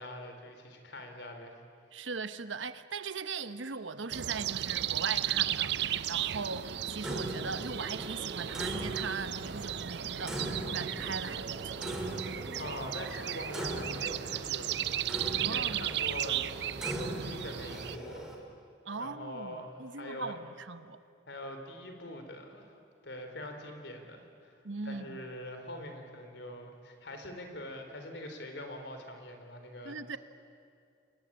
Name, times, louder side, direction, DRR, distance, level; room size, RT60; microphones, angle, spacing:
voice 1, 0.0-1.5 12.6-18.4 18.9-20.3 21.3-22.7 23.0-24.6 24.8-30.0, left 1 dB, 65° left, 5 dB, 3.9 m, -43 dB
voice 2, 1.9-11.9 15.4-15.9 18.9-21.0 24.6-25.3 29.8-30.2, right 4 dB, 85° right, 12 dB, 1.1 m, -39 dB
sound 1, 4.1-18.0, right 11 dB, 60° right, 0.6 m, -35 dB
Clock, 7.0-18.4, right 1 dB, 5° right, 3.4 m, -41 dB
28.0 x 22.0 x 8.8 m, 2.4 s
head